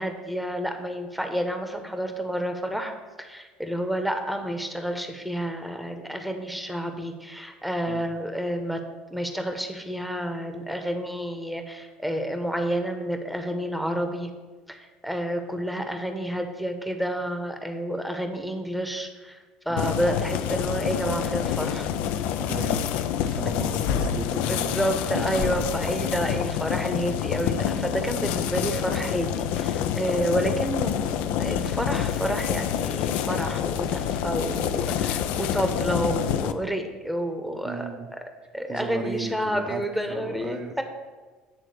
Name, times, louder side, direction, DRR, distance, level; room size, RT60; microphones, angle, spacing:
voice 1, 0.0-2.9 3.2-8.8 9.1-14.3 14.7-21.9 24.5-37.9 38.5-40.8, equal, ahead, 5 dB, 0.9 m, -29 dB
sound 1, 19.8-36.5, left 9 dB, 65° left, 0.4 m, -27 dB
voice 2, 22.4-22.8 23.2-24.9 37.6-38.1 38.7-39.8 40.1-40.8, right 4 dB, 30° right, 3 dB, 0.8 m, -35 dB
8.5 x 3.7 x 6.5 m, 1.4 s
hypercardioid pair, 75°, 3 cm